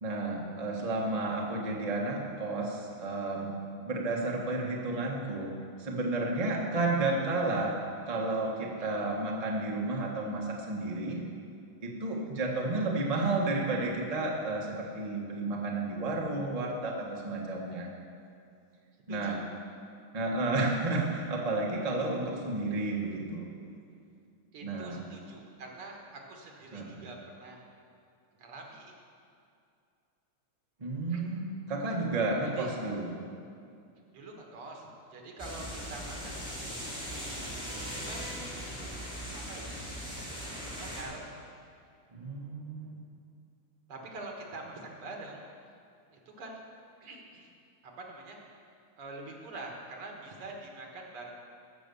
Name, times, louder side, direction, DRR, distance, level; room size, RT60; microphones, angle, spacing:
voice 1, 0.0-11.2 11.8-17.9 19.1-19.4 20.1-23.5 24.6-25.0 26.7-27.0 30.8-33.1 42.1-43.0, right 2 dB, 20° right, -1 dB, 1.0 m, -32 dB
voice 2, 8.8-9.1 19.1-19.4 24.5-27.6 28.4-28.9 31.1-31.2 32.6-32.7 34.1-37.2 37.9-38.3 39.3-39.8 40.1-41.2 43.9-45.4 46.1-46.6 47.0-47.5 47.8-48.4 49.0-51.3, right 2 dB, 80° right, 0 dB, 2.4 m, -45 dB
sound 1, 35.4-41.0, equal, ahead, 2.3 m, -39 dB
14.5 x 6.0 x 6.9 m, 2.4 s
omnidirectional pair, 2.4 m